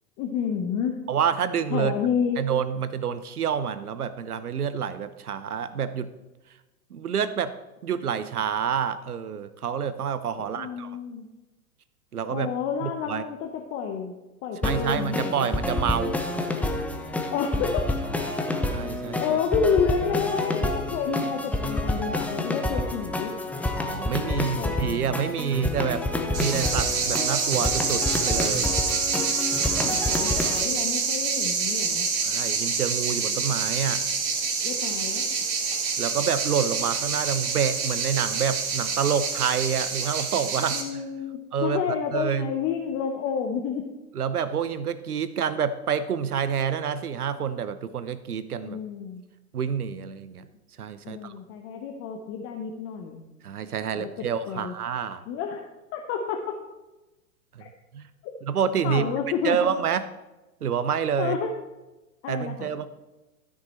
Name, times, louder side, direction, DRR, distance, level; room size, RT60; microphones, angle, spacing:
voice 1, 0.2-0.9 1.7-2.4 10.4-11.3 12.3-14.2 14.4-15.5 17.3-17.8 19.2-23.3 24.2-25.0 29.8-32.1 34.6-35.3 40.7-43.8 48.6-49.2 51.0-53.3 53.9-54.7 55.3-55.6 55.9-56.4 57.6-57.7 58.8-59.6 61.2-61.5 62.2-62.7, left 7 dB, 30° left, 3 dB, 0.8 m, -29 dB
voice 2, 1.1-1.9 2.4-6.1 6.9-7.5 7.8-10.9 12.1-12.5 12.8-13.2 14.6-16.2 18.7-19.4 23.9-26.0 26.4-28.7 32.2-34.0 36.0-41.0 41.5-41.8 42.1-42.5 44.2-48.8 49.5-50.5 50.8-51.3 53.4-55.2 57.6-58.0 58.4-59.1 59.4-60.0 60.6-61.4 62.3-62.9, right 7 dB, 80° right, 14 dB, 0.8 m, -28 dB
sound 1, 14.6-30.6, left 2 dB, 5° left, 0.6 m, -29 dB
sound 2, 26.3-40.8, right 5 dB, 45° right, 2.1 m, -27 dB
13.0 x 6.4 x 4.2 m, 1.1 s
figure-of-eight pair, 105°, 44 cm